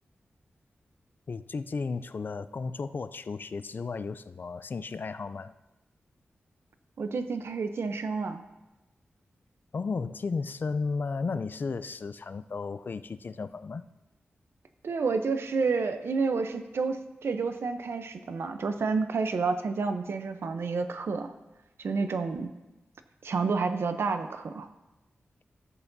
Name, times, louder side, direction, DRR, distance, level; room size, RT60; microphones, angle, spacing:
voice 1, 1.3-5.5 9.7-13.8, left 4 dB, 50° left, 14 dB, 0.4 m, -34 dB
voice 2, 7.0-8.4 14.8-21.3 21.8-22.5 23.2-24.7, right 4 dB, 75° right, 8 dB, 0.7 m, -29 dB
14.0 x 8.2 x 2.7 m, 1.0 s
wide cardioid pair, 80°, 4 cm